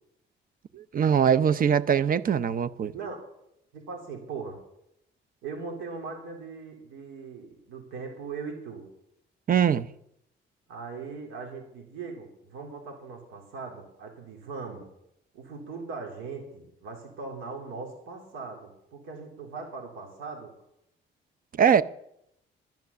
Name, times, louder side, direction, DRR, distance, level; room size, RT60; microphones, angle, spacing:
voice 1, 0.7-2.9 9.5-9.9 21.6-21.8, right 8 dB, 45° right, 0.6 m, -22 dB
voice 2, 2.9-3.2 3.7-4.6 5.4-8.9 10.7-14.9 15.3-20.5, right 4 dB, 90° right, 2.9 m, -39 dB
11.0 x 10.5 x 6.7 m
cardioid pair, 90°, 20 cm